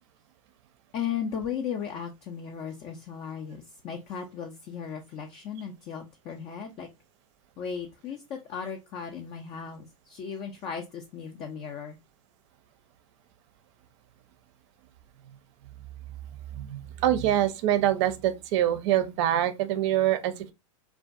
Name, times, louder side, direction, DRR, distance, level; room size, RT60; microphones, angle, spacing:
voice 1, 0.9-6.9 7.6-12.0, left 7 dB, 35° left, 0.4 m, -36 dB
voice 2, 16.5-20.5, right 12 dB, 55° right, 0.5 m, -25 dB
2.5 x 2.2 x 2.4 m
hypercardioid pair, 100°, 18 cm